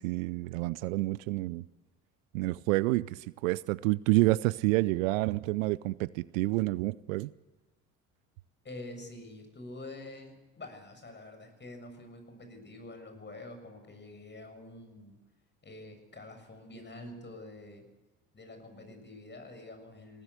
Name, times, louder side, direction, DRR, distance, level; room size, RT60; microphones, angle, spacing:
voice 1, 0.0-1.6 2.3-7.3, right 20 dB, 65° right, 0.6 m, -28 dB
voice 2, 8.6-15.1 15.6-17.9 18.3-20.2, left 2 dB, 25° left, 6.9 m, -47 dB
21.5 x 17.5 x 8.2 m
figure-of-eight pair, 60°, 43 cm